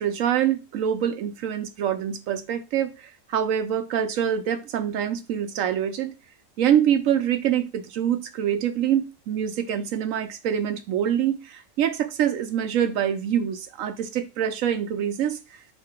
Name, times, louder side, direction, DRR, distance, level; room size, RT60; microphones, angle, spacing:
voice 1, 0.0-2.9 3.3-6.1 6.6-15.4, right 9 dB, 80° right, 1.0 m, -25 dB
4.7 x 2.8 x 3.4 m
omnidirectional pair, 1.4 m